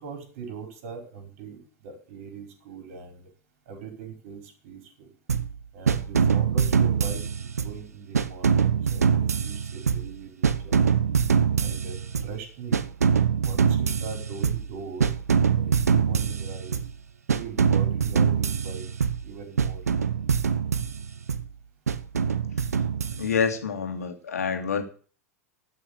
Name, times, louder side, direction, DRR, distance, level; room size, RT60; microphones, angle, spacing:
voice 1, 0.0-3.3 3.7-5.1 5.7-7.2 7.6-10.8 11.6-12.8 13.4-15.1 15.5-16.7 17.3-18.8 19.2-19.8, right 5 dB, 55° right, 4 dB, 4.9 m, -40 dB
sound 1, 5.3-5.6 5.9-7.8 8.1-10.2 10.4-12.4 12.7-14.7 15.0-17.0 17.3-19.3 19.6-21.5 21.9-23.5, right 6 dB, 80° right, 0.9 m, -24 dB
voice 2, 23.2-24.8, left 6 dB, 80° left, 6 dB, 2.4 m, -27 dB
13.0 x 6.2 x 8.6 m, 0.41 s
hypercardioid pair, 95°, 8 cm